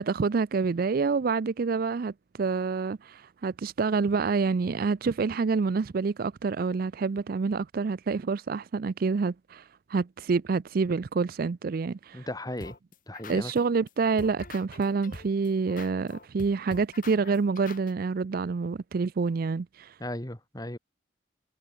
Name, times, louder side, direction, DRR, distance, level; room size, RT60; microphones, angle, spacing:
voice 1, 0.0-2.1 2.4-9.6 9.9-12.3 13.3-19.9, right 4 dB, 55° right, 0.4 m, -27 dB
voice 2, 12.1-12.7 13.1-13.5 20.0-20.8, left 1 dB, 20° left, 4.0 m, -36 dB
sound 1, 12.6-13.9 14.2-17.9, left 2 dB, 50° left, 5.2 m, -44 dB
head